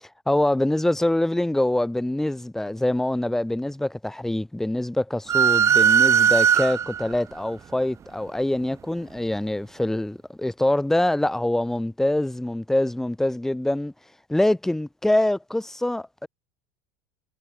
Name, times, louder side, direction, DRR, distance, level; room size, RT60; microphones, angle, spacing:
voice 1, 0.3-13.9 14.3-16.3, left 1 dB, 5° left, 1.8 m, -24 dB
sound 1, 5.3-7.1, right 8 dB, 25° right, 0.8 m, -18 dB
supercardioid pair, 145°, 12 cm